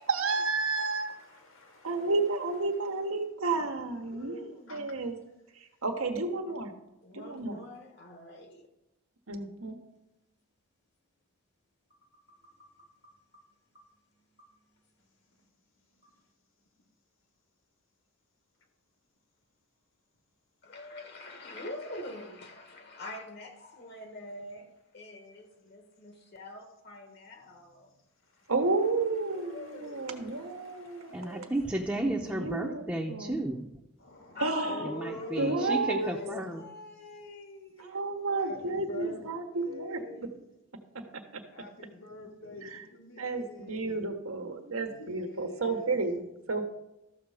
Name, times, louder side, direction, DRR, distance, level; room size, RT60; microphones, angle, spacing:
voice 1, 0.0-1.1 1.8-4.4 4.7-5.2 5.5-6.7 7.1-7.6 9.3-9.8 28.5-31.5 32.3-33.4 34.4-34.9 35.4-36.1 37.8-40.3 41.3-41.4 42.6-42.8 43.2-46.6, right 3 dB, 80° right, 1.3 m, -31 dB
voice 2, 0.6-2.1 4.7-4.8 28.3-28.5 29.3-29.6 30.1-31.5 34.0-36.5 38.4-39.3 39.7-40.4 41.5-44.1 44.9-46.0, left 2 dB, 70° left, 2.0 m, -44 dB
voice 3, 4.0-4.9 7.0-8.7 12.0-13.4 13.7-13.9 14.3-14.9 16.0-16.1 20.6-27.9 29.3-30.3 34.3-38.0, left 2 dB, 50° left, 1.3 m, -45 dB
voice 4, 31.1-33.7 34.8-36.7, right 1 dB, 5° right, 0.8 m, -33 dB
13.5 x 6.8 x 5.0 m
head